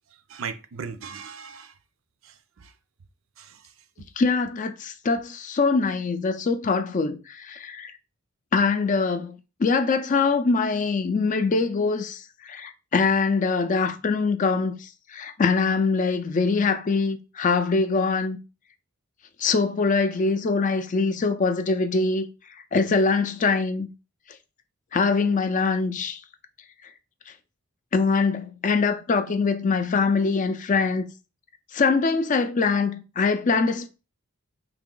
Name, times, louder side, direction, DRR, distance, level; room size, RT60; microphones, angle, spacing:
voice 1, 0.1-1.8 2.2-2.7 3.4-3.8, right 6 dB, 65° right, 0.5 m, -39 dB
voice 2, 4.2-7.9 8.5-18.4 19.4-22.3 22.7-23.9 24.9-26.2 27.9-31.1 31.7-33.9, left 4 dB, 35° left, 0.4 m, -23 dB
3.4 x 2.9 x 3.7 m
head